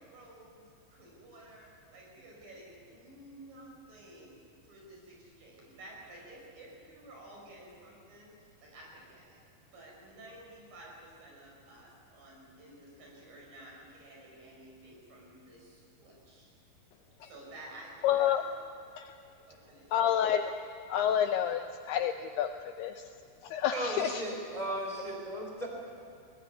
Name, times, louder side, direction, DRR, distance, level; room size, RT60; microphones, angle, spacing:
voice 1, 0.1-0.6 0.9-4.4 4.6-8.3 8.6-9.4 9.7-16.5 17.2-18.4 19.5-20.1, right 1 dB, 50° right, -2 dB, 7.3 m, -52 dB
voice 2, 18.0-18.4 19.0-19.1 19.9-20.5 20.9-22.5 22.8-23.0 23.4-24.2, left 10 dB, 80° left, 7 dB, 2.5 m, -29 dB
voice 3, 23.7-25.7, right 1 dB, 10° left, 0 dB, 3.4 m, -36 dB
21.5 x 20.0 x 9.6 m, 2.5 s
omnidirectional pair, 5.1 m